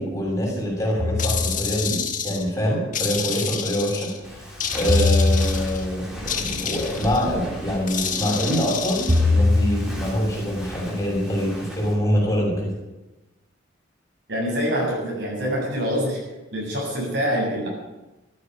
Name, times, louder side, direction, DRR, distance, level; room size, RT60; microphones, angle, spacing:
voice 1, 0.0-2.0 2.2-4.4 4.7-12.7, equal, 15° left, -4 dB, 7.0 m, -25 dB
sound 1, 1.0-1.8 4.9-5.9 9.1-10.0, left 2 dB, 30° right, 2.1 m, -21 dB
sound 2, 1.2-2.5 2.9-4.2 4.6-5.8 6.3-7.2 7.9-9.2, left 7 dB, 40° left, 1.6 m, -29 dB
Walk footsteps, 4.2-11.9, equal, ahead, 3.9 m, -37 dB
voice 2, 14.3-16.2 16.5-17.7, equal, 60° right, -3 dB, 7.5 m, -25 dB
14.5 x 9.8 x 9.4 m, 1.0 s
head